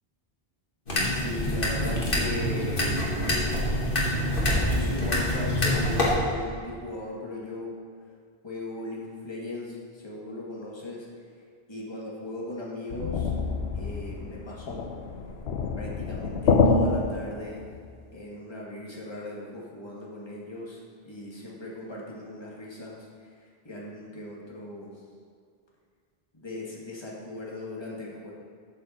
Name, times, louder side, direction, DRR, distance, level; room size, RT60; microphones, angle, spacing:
sound 1, 0.9-6.1, left 1 dB, 60° left, 2.1 m, -26 dB
voice 1, 1.1-3.1 4.6-7.7 8.4-11.1 11.7-13.3 13.7-14.8 15.8-17.7 18.1-23.3 23.6-24.9 26.3-28.3, left 2 dB, 25° left, -4 dB, 1.9 m, -38 dB
sound 2, 12.9-17.9, left 4 dB, 90° left, 1.0 m, -27 dB
13.0 x 6.9 x 4.3 m, 2.2 s
omnidirectional pair, 1.0 m